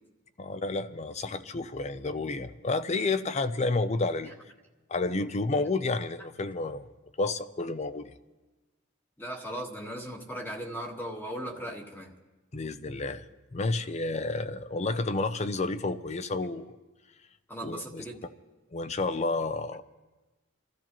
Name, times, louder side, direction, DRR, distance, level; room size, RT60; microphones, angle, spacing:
voice 1, 0.4-4.3 4.9-6.9 7.2-8.1 12.5-13.2 13.5-16.8 17.6-18.0 18.7-19.8, left 3 dB, 35° left, 12 dB, 0.5 m, -30 dB
voice 2, 9.2-12.1 17.5-18.2, right 1 dB, 10° left, 1 dB, 1.5 m, -38 dB
27.5 x 13.0 x 3.0 m, 1.2 s
head